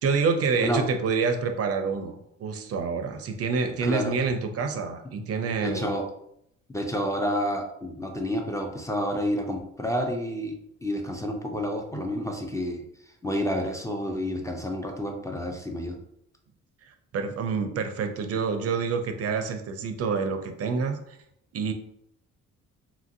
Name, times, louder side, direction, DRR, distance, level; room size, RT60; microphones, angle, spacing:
voice 1, 0.0-5.9 17.1-21.2 21.5-21.7, right 5 dB, 50° right, 7 dB, 0.4 m, -27 dB
voice 2, 3.8-4.1 5.2-5.3 5.6-6.0 6.7-10.6 10.8-12.8 13.2-16.0, equal, 10° left, 2 dB, 0.4 m, -29 dB
2.9 x 2.5 x 2.6 m, 0.75 s
cardioid pair, 90°, 30 cm